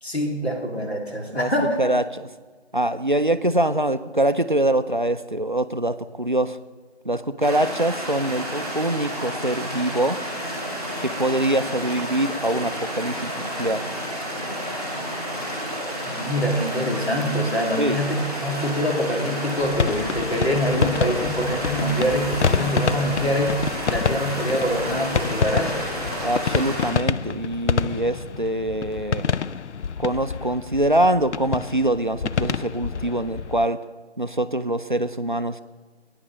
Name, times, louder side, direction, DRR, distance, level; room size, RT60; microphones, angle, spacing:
voice 1, 0.0-1.8 16.1-23.6 23.9-25.9, equal, 65° left, 0 dB, 2.6 m, -25 dB
voice 2, 1.8-2.3 2.7-6.6 7.0-10.2 11.0-13.8 17.8-18.0 26.2-29.3 30.0-33.8 34.2-35.6, right 1 dB, 45° right, 11 dB, 0.4 m, -24 dB
sound 1, 7.4-26.9, equal, 5° right, 1.8 m, -30 dB
sound 2, 19.6-33.7, left 6 dB, 90° left, 0.5 m, -28 dB
16.5 x 9.7 x 3.1 m, 1.3 s
figure-of-eight pair, 175°, 34 cm